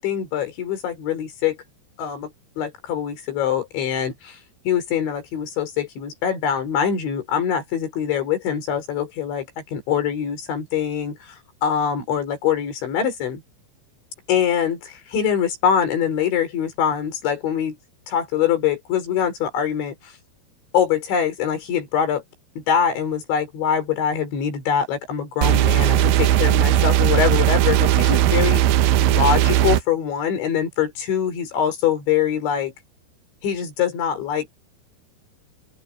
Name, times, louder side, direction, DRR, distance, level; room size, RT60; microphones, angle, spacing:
voice 1, 0.0-1.6 2.0-4.4 4.7-13.4 14.3-17.8 18.1-20.1 20.7-22.2 22.6-32.7 33.4-34.5, left 8 dB, 75° left, 6.9 m, -23 dB
sound 1, 25.4-29.8, right 12 dB, 85° right, 2.1 m, -17 dB
open air
omnidirectional pair, 5.3 m